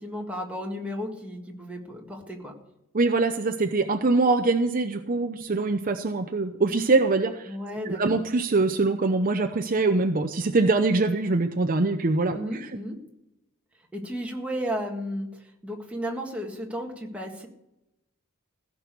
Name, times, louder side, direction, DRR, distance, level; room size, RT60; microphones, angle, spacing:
voice 1, 0.0-2.5 7.5-8.2 12.3-12.9 13.9-17.5, equal, 5° right, 0 dB, 1.8 m, -34 dB
voice 2, 2.9-7.5 7.8-12.7, right 3 dB, 40° right, 7 dB, 0.6 m, -23 dB
16.0 x 6.1 x 8.4 m, 0.87 s
head